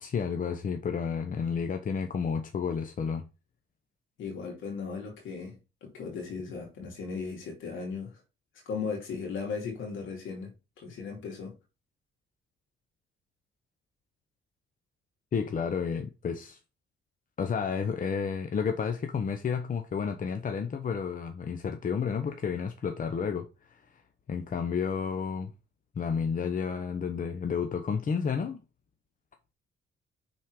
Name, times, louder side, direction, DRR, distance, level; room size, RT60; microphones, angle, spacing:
voice 1, 0.0-3.3 15.3-16.6 17.4-23.8 24.3-25.5 25.9-28.6, left 6 dB, 45° left, 0.9 m, -31 dB
voice 2, 4.2-8.2 8.7-11.6, left 5 dB, 85° left, 2.7 m, -37 dB
5.9 x 4.3 x 4.9 m
cardioid pair, 90°, 20 cm